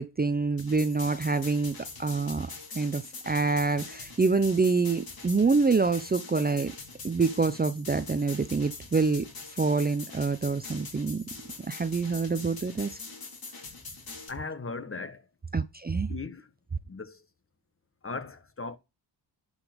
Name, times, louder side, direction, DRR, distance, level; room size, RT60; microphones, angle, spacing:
voice 1, 0.0-2.5 2.7-6.7 7.0-9.3 9.5-11.2 11.7-12.9 15.5-16.1, right 4 dB, 20° right, 0.7 m, -26 dB
sound 1, 0.6-14.3, left 4 dB, 50° left, 3.5 m, -43 dB
voice 2, 14.3-15.2 16.1-16.5 16.9-17.2 18.0-18.8, left 4 dB, 30° left, 1.4 m, -37 dB
11.5 x 5.2 x 5.3 m
cardioid pair, 65°, 45 cm